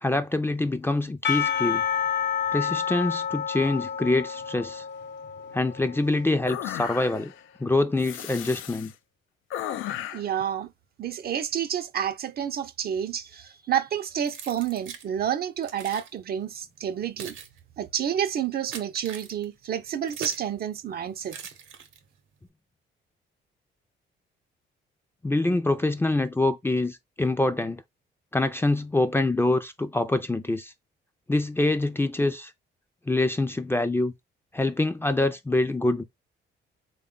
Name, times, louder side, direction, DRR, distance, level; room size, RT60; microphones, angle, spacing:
voice 1, 0.0-1.9 2.5-4.8 5.5-7.3 7.6-8.9 25.2-27.8 28.3-30.7 31.3-32.5 33.1-34.1 34.5-36.0, left 2 dB, 10° left, 0.4 m, -25 dB
Percussion / Church bell, 1.2-6.5, left 8 dB, 60° left, 0.8 m, -29 dB
sound 1, 6.5-7.4 8.0-8.9 9.5-10.3, left 11 dB, 85° left, 0.4 m, -34 dB
voice 2, 10.1-10.7 11.0-17.3 17.8-21.4, right 9 dB, 50° right, 0.5 m, -29 dB
Keys jangling, 14.2-15.1 15.6-16.1 16.8-20.5 21.3-22.2, right 7 dB, 75° right, 0.8 m, -42 dB
3.4 x 2.3 x 3.7 m
cardioid pair, 90°, 20 cm